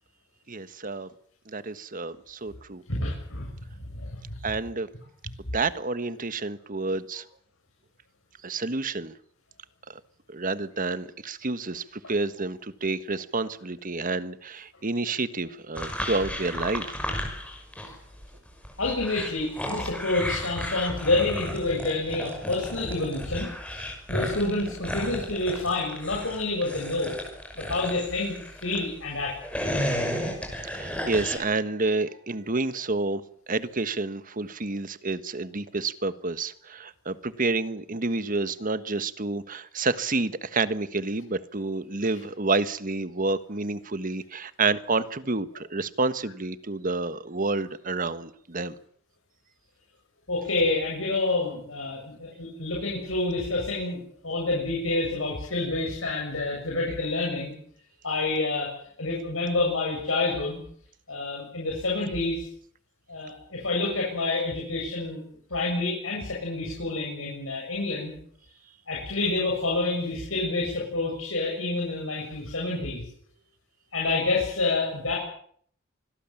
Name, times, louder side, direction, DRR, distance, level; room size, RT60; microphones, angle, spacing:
voice 1, 0.5-1.1 1.5-2.8 4.4-4.9 5.5-7.2 8.4-9.1 9.9-10.0 10.3-17.0 30.6-33.2 33.5-48.8, right 3 dB, 45° right, 13 dB, 1.4 m, -29 dB
voice 2, 2.9-3.5 3.9-4.2 17.8-17.9 18.8-27.1 27.6-28.3 28.6-29.4 50.3-57.5 58.0-58.7 59.0-60.6 61.1-62.5 63.1-65.2 65.5-68.1 68.9-73.1 73.9-75.2, left 2 dB, 85° left, -2 dB, 7.4 m, -28 dB
sound 1, 15.8-18.0 18.2-28.9 29.3-31.4, equal, 5° left, 6.0 m, -33 dB
26.0 x 21.5 x 7.3 m, 0.62 s
head